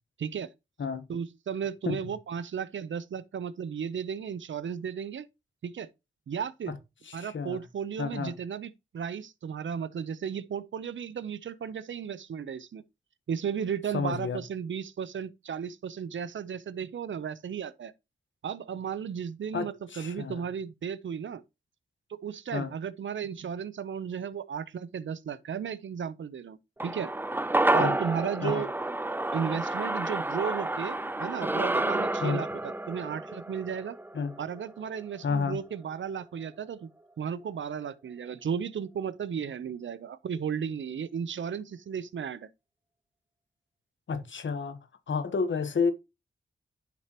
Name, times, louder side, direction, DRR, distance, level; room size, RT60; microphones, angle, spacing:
voice 1, 0.2-0.5 1.1-5.3 5.6-5.9 6.3-6.7 7.1-12.8 13.3-17.9 18.4-21.4 22.1-27.1 27.7-28.7 29.3-34.0 34.4-36.9 37.2-42.5, right 7 dB, 75° right, 0.7 m, -34 dB
voice 2, 7.1-7.6 8.0-8.3 13.9-14.4 19.5-20.4 22.5-22.7 27.8-28.0 28.4-28.6 32.2-32.4 34.1-34.3 35.2-35.6 44.1-44.8 45.1-45.9, left 5 dB, 75° left, 1.2 m, -30 dB
sound 1, 26.8-35.3 35.6-35.7, right 2 dB, 10° right, 0.5 m, -30 dB
10.0 x 6.0 x 2.9 m
cardioid pair, 40°, 20 cm